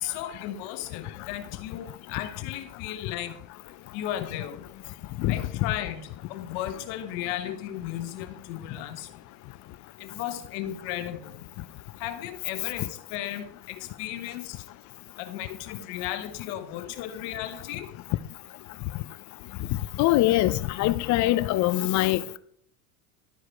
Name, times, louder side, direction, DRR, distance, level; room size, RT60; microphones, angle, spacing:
voice 1, 0.0-3.3 3.9-4.7 5.3-6.0 6.3-9.1 10.0-11.3 12.0-14.6 15.2-17.9, left 12 dB, 60° left, 1.2 m, -35 dB
voice 2, 20.0-22.4, left 16 dB, 40° left, 0.5 m, -23 dB
11.5 x 4.8 x 4.5 m
supercardioid pair, 120°, 48 cm